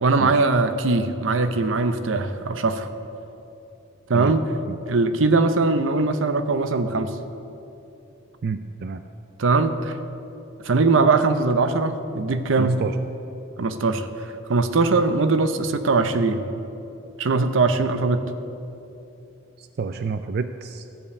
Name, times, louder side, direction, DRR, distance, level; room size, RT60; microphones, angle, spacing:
voice 1, 0.0-2.9 4.1-4.4 4.9-7.2 9.4-10.0 10.6-12.8 13.6-16.4 17.2-18.3, right 3 dB, 85° right, 10 dB, 0.7 m, -21 dB
voice 2, 8.4-9.0 12.6-12.9 19.6-20.9, right 5 dB, 55° right, 9 dB, 0.4 m, -29 dB
14.0 x 5.3 x 8.3 m, 2.9 s
head